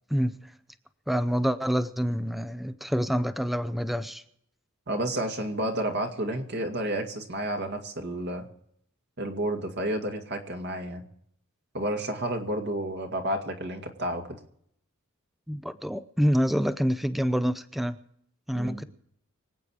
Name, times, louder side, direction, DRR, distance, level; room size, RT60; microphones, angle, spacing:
voice 1, 1.1-4.2 15.5-18.0 18.5-18.9, equal, ahead, 12 dB, 0.6 m, -27 dB
voice 2, 4.9-8.4 9.2-11.1 11.7-14.2 18.5-18.8, right 1 dB, 55° right, 3 dB, 2.3 m, -31 dB
25.0 x 8.9 x 4.8 m, 0.69 s
head